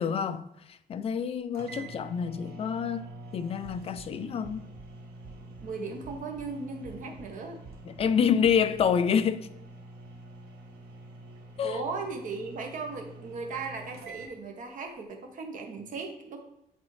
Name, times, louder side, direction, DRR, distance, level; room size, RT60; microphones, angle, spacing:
voice 1, 0.0-3.1 3.3-4.7 7.9-9.5 11.6-11.8, left 7 dB, 40° left, 0.4 m, -27 dB
sound 1, 1.2-1.3 1.5-14.3, right 2 dB, 85° right, 1.1 m, -47 dB
sound 2, 3.6-4.1 4.4-4.9 5.2-5.7 6.0-6.5 6.8-7.3 7.6-8.1 8.4-8.9, right 5 dB, 30° right, 0.5 m, -50 dB
voice 2, 5.6-7.6 11.6-16.4, right 4 dB, 55° right, 1.0 m, -37 dB
8.1 x 4.1 x 3.2 m
wide cardioid pair, 175°, 16 cm